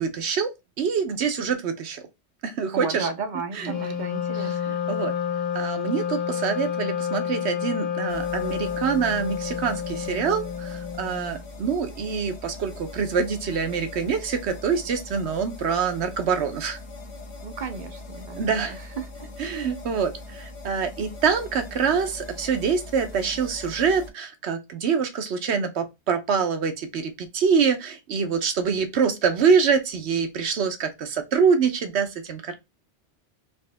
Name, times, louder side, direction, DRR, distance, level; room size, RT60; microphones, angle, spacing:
voice 1, 0.0-2.1 2.4-3.1 3.5-3.7 4.4-4.5 4.9-5.1 5.5-16.8 18.4-18.8 19.4-32.5, right 6 dB, 70° right, 1.0 m, -25 dB
voice 2, 2.7-4.8 17.4-19.3, right 4 dB, 50° right, 0.7 m, -34 dB
Wind instrument woodwind instrument, 3.6-11.4, left 8 dB, 45° left, 0.8 m, -29 dB
sound 1, 8.1-24.1, left 2 dB, 70° left, 1.2 m, -41 dB
4.3 x 3.0 x 3.3 m
omnidirectional pair, 1.2 m